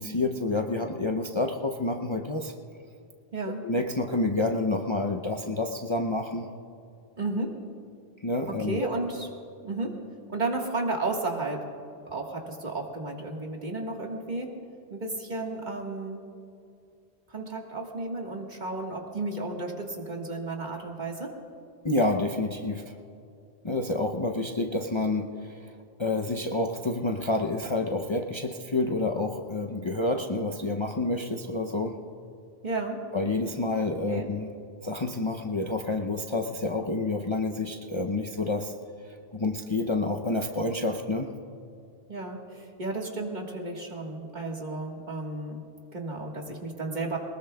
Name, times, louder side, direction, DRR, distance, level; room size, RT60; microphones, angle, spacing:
voice 1, 0.0-2.5 3.6-6.5 8.2-8.9 21.8-22.8 23.6-25.7 26.0-31.9 33.1-34.5 34.8-38.7 39.0-41.3, left 2 dB, 35° left, 2 dB, 0.6 m, -28 dB
voice 2, 3.3-3.6 7.2-7.6 8.5-9.3 9.6-10.0 10.3-11.6 12.1-14.5 14.9-16.2 17.3-21.3 32.6-33.0 34.1-34.3 42.1-45.6 45.9-47.2, right 2 dB, 45° right, 1 dB, 1.7 m, -33 dB
22.0 x 20.0 x 2.3 m, 2.5 s
omnidirectional pair, 1.0 m